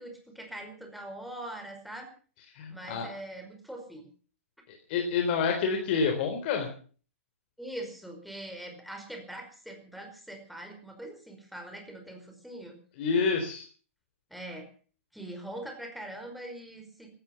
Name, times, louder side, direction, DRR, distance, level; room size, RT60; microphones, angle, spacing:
voice 1, 0.0-2.1 2.7-4.1 7.6-12.8 14.3-14.7 15.1-17.1, right 1 dB, ahead, 3 dB, 5.0 m, -42 dB
voice 2, 2.6-3.1 4.9-6.7 13.0-13.7, left 5 dB, 50° left, 4 dB, 3.8 m, -28 dB
15.5 x 13.0 x 7.2 m, 0.42 s
hypercardioid pair, 140°, 7 cm